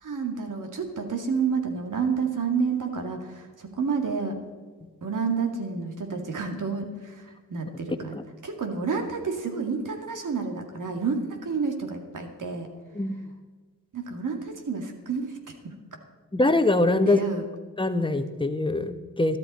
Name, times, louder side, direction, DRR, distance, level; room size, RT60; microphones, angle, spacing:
voice 1, 0.0-4.4 5.0-8.1 8.4-12.7 13.9-15.3 15.6-15.7 17.1-17.5, right 5 dB, 60° right, 3 dB, 2.2 m, -29 dB
voice 2, 12.9-13.3 16.3-17.2 17.8-19.4, left 2 dB, 15° left, 9 dB, 1.2 m, -23 dB
12.5 x 12.5 x 4.3 m, 1.4 s
supercardioid pair, 45°, 36 cm